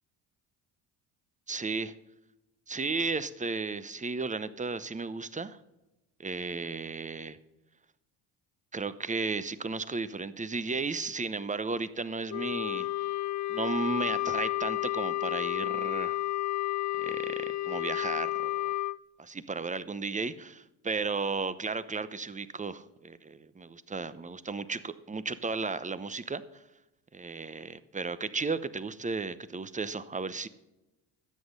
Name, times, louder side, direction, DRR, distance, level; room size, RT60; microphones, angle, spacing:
voice 1, 1.5-1.9 2.7-5.6 6.2-7.4 8.7-13.2 13.5-16.2 17.0-18.7 19.2-26.6 27.1-30.5, right 4 dB, 15° right, 15 dB, 0.8 m, -34 dB
Wind instrument woodwind instrument, 12.3-19.0, left 15 dB, 40° left, 0.5 m, -31 dB
12.5 x 7.9 x 5.3 m, 0.95 s
supercardioid pair, 65°, 46 cm